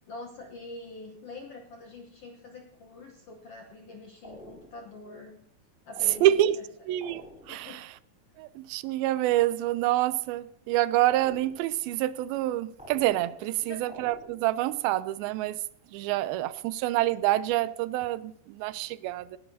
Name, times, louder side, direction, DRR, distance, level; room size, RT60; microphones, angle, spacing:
voice 1, 0.1-5.4 5.9-6.6 7.5-7.8 13.6-13.8, left 2 dB, 70° left, 1.4 m, -45 dB
sound 1, 4.2-5.0 6.0-6.7 7.0-7.7 11.1-11.8 12.8-13.5 13.9-14.6, equal, ahead, 2.8 m, -49 dB
voice 2, 6.2-6.6 6.9-7.9 8.4-15.6 15.9-19.4, right 14 dB, 90° right, 2.4 m, -27 dB
19.0 x 12.0 x 2.7 m
omnidirectional pair, 4.2 m